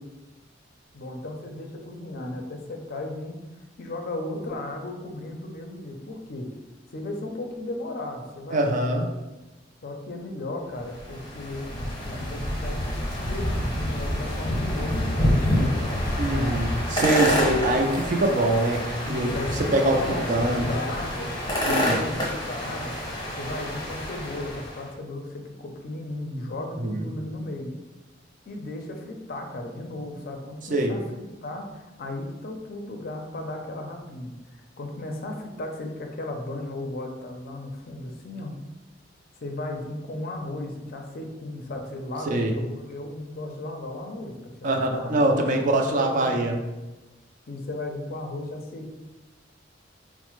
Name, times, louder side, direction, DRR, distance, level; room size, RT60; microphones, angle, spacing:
voice 1, 0.9-3.4 3.8-6.5 6.9-8.9 9.8-12.9 13.3-16.0 16.4-16.6 19.0-21.3 21.6-22.9 23.3-27.7 28.5-38.5 39.4-46.5 47.5-49.0, left 2 dB, 50° left, 3 dB, 0.5 m, -35 dB
voice 2, 8.5-9.1 16.2-19.3 19.7-20.7 21.7-22.0 26.8-27.1 30.7-30.9 42.3-42.5 44.6-46.6, right 1 dB, 45° right, 3 dB, 0.4 m, -23 dB
sound 1, 10.8-24.8, left 1 dB, 20° left, 0.8 m, -27 dB
4.1 x 2.1 x 3.0 m, 1.1 s
head